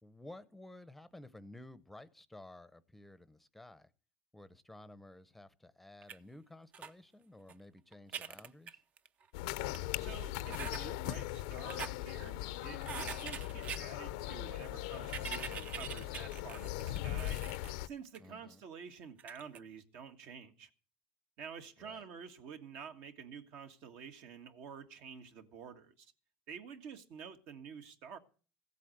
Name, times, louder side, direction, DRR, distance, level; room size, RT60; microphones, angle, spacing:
voice 1, 0.0-3.9 4.3-8.8 18.2-18.6 21.8-22.0, left 1 dB, 5° left, 0.7 m, -54 dB
sound 1, 6.0-6.2 6.7-6.9 7.5-7.6 7.9-9.2 9.7-9.8 10.5-10.8 11.5-11.9 12.8-13.8 15.0-17.7 18.1-18.2 19.2-19.6, right 7 dB, 40° right, 0.6 m, -43 dB
sound 2, 9.3-17.9, left 14 dB, 85° left, 0.6 m, -39 dB
voice 2, 10.0-17.4 17.8-20.7 21.4-26.1 26.5-28.2, right 6 dB, 65° right, 1.7 m, -49 dB
15.5 x 8.3 x 7.9 m
supercardioid pair, 120°, 4 cm